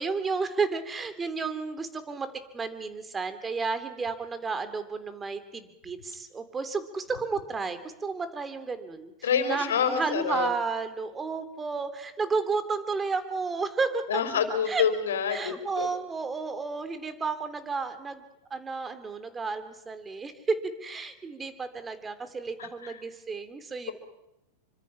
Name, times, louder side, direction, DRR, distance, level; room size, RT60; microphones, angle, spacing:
voice 1, 0.0-2.3 2.5-14.2 14.7-14.8 15.3-18.2 18.5-23.9, right 4 dB, 15° right, 10 dB, 3.2 m, -32 dB
voice 2, 9.2-10.5 14.1-15.9 22.6-22.9, left 7 dB, 80° left, 8 dB, 4.1 m, -27 dB
27.0 x 25.0 x 5.7 m, 0.89 s
hypercardioid pair, 105°, 0 cm